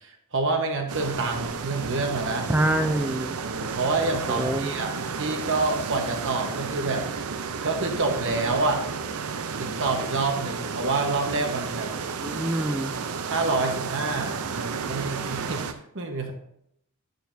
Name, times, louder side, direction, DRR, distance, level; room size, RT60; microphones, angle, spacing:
voice 1, 0.0-2.5 3.4-4.9 5.2-7.1 7.6-8.8 9.6-11.9 13.3-16.3, right 3 dB, 60° right, 4 dB, 1.2 m, -27 dB
sound 1, 0.9-15.7, right 5 dB, 80° right, 0.6 m, -32 dB
voice 2, 2.5-3.3 4.3-4.7 12.1-13.0, right 1 dB, 10° right, 6 dB, 0.3 m, -26 dB
9.2 x 6.8 x 2.7 m, 0.74 s
head